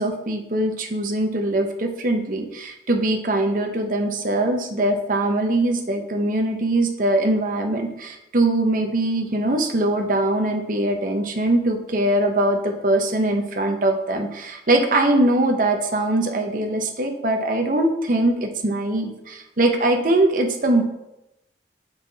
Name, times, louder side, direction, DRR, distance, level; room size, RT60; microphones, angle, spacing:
voice 1, 0.0-20.8, right 1 dB, 50° right, 4 dB, 0.8 m, -22 dB
6.0 x 5.7 x 3.9 m, 0.91 s
head